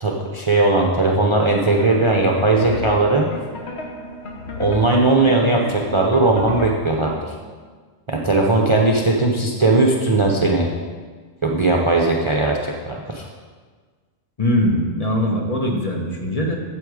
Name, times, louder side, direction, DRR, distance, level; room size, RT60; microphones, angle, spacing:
voice 1, 0.0-3.3 4.6-7.3 8.1-10.7 11.4-13.3, right 2 dB, 30° right, 0 dB, 0.7 m, -18 dB
sound 1, 1.6-7.2, left 1 dB, 60° left, 1.4 m, -33 dB
voice 2, 14.4-16.6, left 1 dB, 30° left, 0 dB, 1.1 m, -21 dB
8.8 x 7.8 x 4.8 m, 1.5 s
omnidirectional pair, 1.2 m